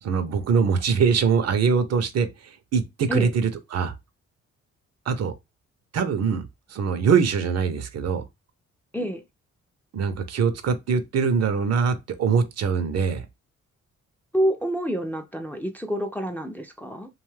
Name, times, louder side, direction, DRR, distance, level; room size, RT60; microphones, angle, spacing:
voice 1, 0.0-3.9 5.1-5.3 5.9-8.2 9.9-13.3, right 6 dB, 60° right, 0.6 m, -23 dB
voice 2, 14.3-17.1, equal, 5° left, 0.4 m, -27 dB
2.6 x 2.3 x 3.1 m
cardioid pair, 80°, 29 cm